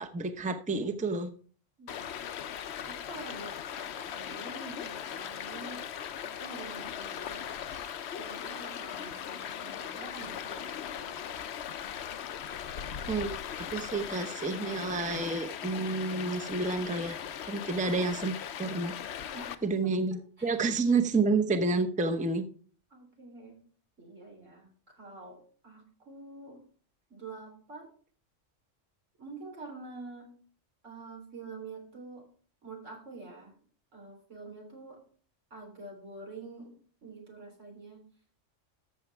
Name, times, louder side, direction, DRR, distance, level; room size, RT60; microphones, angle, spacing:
voice 1, 0.0-1.3 13.1-13.4 13.7-17.2 17.5-19.0 19.6-22.5, right 3 dB, 10° right, 6 dB, 0.7 m, -29 dB
Stream, 1.9-19.6, left 9 dB, 65° left, 0.9 m, -39 dB
voice 2, 2.9-5.9 6.4-7.6 8.1-11.2 19.3-20.0 20.4-20.6 22.9-23.6 24.0-26.6 27.1-27.9 29.2-30.3 30.8-32.3 32.6-33.5 33.9-35.0 35.5-36.8 37.0-38.0, right 3 dB, 80° right, 1 dB, 3.9 m, -47 dB
13.5 x 7.0 x 3.4 m, 0.43 s
omnidirectional pair, 1.3 m